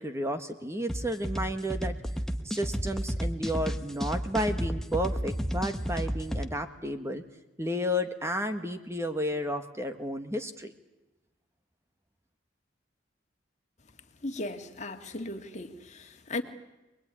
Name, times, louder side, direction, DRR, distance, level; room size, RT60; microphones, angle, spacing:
voice 1, 0.0-1.9 2.4-7.2 7.6-10.7, equal, 15° right, 7 dB, 1.6 m, -32 dB
sound 1, 0.9-6.4, equal, ahead, 1.2 m, -32 dB
voice 2, 14.2-16.4, left 2 dB, 35° left, 6 dB, 2.1 m, -37 dB
26.5 x 20.5 x 9.9 m, 1.0 s
head